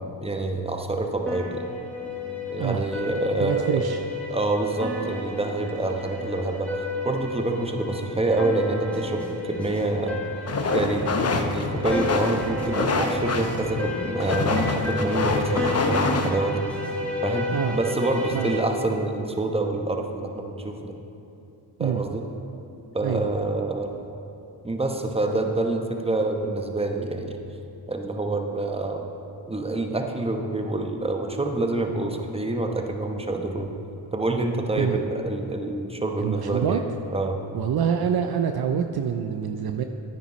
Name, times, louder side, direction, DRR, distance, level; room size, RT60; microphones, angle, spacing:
voice 1, 0.0-1.7 2.5-3.8 4.3-10.2 10.7-16.7 17.2-20.9 21.8-22.2 22.9-24.0 24.6-27.4 27.9-29.1 29.5-33.7 34.1-36.8 37.1-37.4, right 2 dB, 15° right, 3 dB, 1.0 m, -27 dB
sound 1, 1.3-18.6, left 2 dB, 5° left, 1.6 m, -32 dB
voice 2, 3.4-4.0 17.5-17.7 18.3-18.5 21.8-22.0 23.0-23.2 34.8-35.0 36.2-36.8 37.5-39.8, right 8 dB, 55° right, 6 dB, 0.5 m, -26 dB
sound 2, 10.5-16.3, left 3 dB, 35° left, 0.8 m, -26 dB
9.7 x 9.1 x 3.1 m, 2.8 s
supercardioid pair, 45°, 45 cm